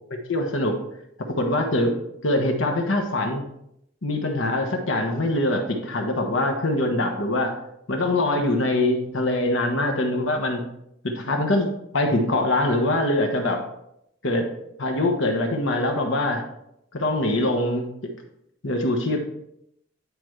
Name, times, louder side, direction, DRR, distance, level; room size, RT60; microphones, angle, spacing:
voice 1, 0.3-0.8 1.3-1.9 2.2-3.4 4.0-7.5 7.9-10.6 11.0-13.6 14.2-14.5 14.8-16.4 16.9-17.9 18.6-19.2, left 1 dB, 65° left, 3 dB, 1.2 m, -23 dB
9.9 x 5.1 x 3.2 m, 0.77 s
head